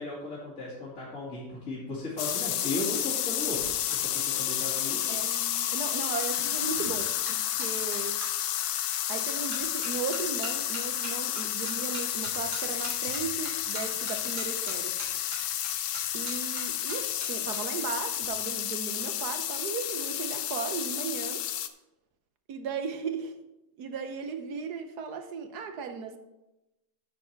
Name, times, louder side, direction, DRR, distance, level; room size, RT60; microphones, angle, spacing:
voice 1, 0.0-3.6 3.9-5.1, left 2 dB, 45° left, -8 dB, 2.5 m, -36 dB
sound 1, 2.2-21.7, left 11 dB, 70° left, 1.0 m, -31 dB
sound 2, 3.3-8.3 8.9-9.2 9.5-17.6 17.9-18.3, right 1 dB, 90° right, 4.0 m, -43 dB
voice 2, 5.7-8.2 9.1-15.0 16.1-21.4 22.5-23.3 23.8-26.2, right 5 dB, 65° right, 8 dB, 1.3 m, -36 dB
10.5 x 6.9 x 4.5 m, 0.96 s
omnidirectional pair, 2.0 m